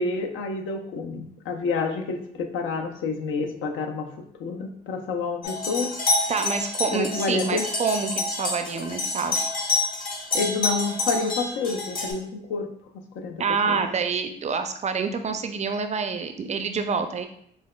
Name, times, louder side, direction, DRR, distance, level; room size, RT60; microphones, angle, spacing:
voice 1, 0.0-4.1 4.4-5.9 6.9-7.7 10.3-12.7 13.2-13.8, left 4 dB, 80° left, 5 dB, 0.6 m, -29 dB
sound 1, 5.4-12.1, left 3 dB, 45° left, 1.0 m, -28 dB
voice 2, 6.3-9.4 13.4-17.3, right 5 dB, 35° right, 7 dB, 0.4 m, -27 dB
5.9 x 2.2 x 2.2 m, 0.67 s
cardioid pair, 90°, 20 cm